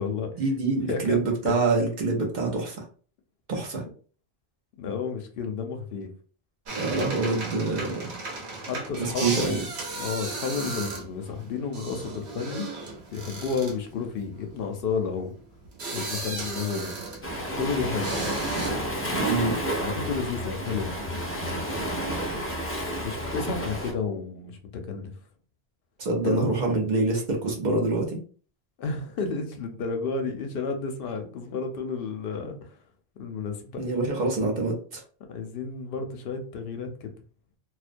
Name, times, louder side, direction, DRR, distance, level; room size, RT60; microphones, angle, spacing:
voice 1, 0.4-2.8 3.5-3.8 6.7-8.2 9.0-9.6 19.2-19.6 26.0-28.2 33.8-35.0, right 3 dB, 50° right, 1 dB, 0.7 m, -26 dB
voice 2, 0.9-1.2 1.4-1.5 4.8-6.1 8.7-9.6 10.0-12.7 13.1-15.3 15.9-16.9 17.5-18.2 19.8-20.9 23.0-24.6 24.8-25.1 26.2-26.5 28.8-32.7 33.2-33.8 35.3-37.1, left 5 dB, 65° left, 5 dB, 0.7 m, -31 dB
sound 1, 6.7-17.6 18.0-18.7, right 3 dB, 90° right, 1.0 m, -35 dB
Waves surf, 17.2-23.9, equal, 20° left, 0.4 m, -30 dB
2.3 x 2.1 x 2.5 m, 0.41 s
omnidirectional pair, 1.1 m